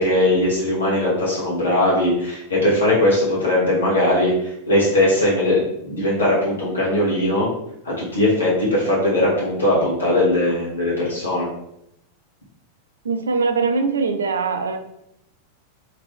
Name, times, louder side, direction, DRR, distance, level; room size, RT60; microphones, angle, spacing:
voice 1, 0.0-7.5 7.8-11.5, left 1 dB, 70° left, -6 dB, 1.0 m, -19 dB
voice 2, 13.0-14.8, right 4 dB, 70° right, 6 dB, 0.4 m, -22 dB
3.0 x 2.8 x 3.4 m, 0.78 s
figure-of-eight pair, 90°, 0 cm